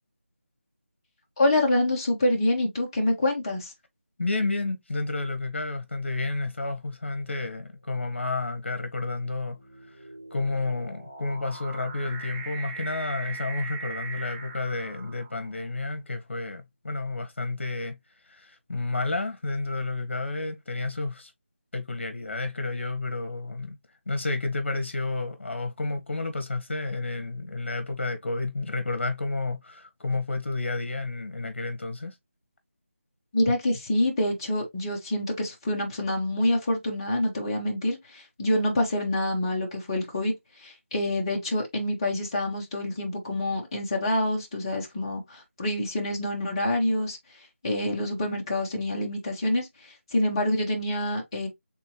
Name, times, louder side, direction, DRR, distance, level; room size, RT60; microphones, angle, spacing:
voice 1, 1.4-3.7 33.3-40.3 40.6-47.2 47.6-51.5, left 1 dB, 20° left, 1.2 m, -26 dB
voice 2, 4.2-9.6 10.3-18.0 18.2-21.3 21.7-23.8 24.1-32.1, left 3 dB, 60° left, 1.4 m, -31 dB
sound 1, 6.5-6.6 7.5-15.7, right 4 dB, 25° right, 1.2 m, -41 dB
4.3 x 3.7 x 2.9 m
figure-of-eight pair, 165°, 7 cm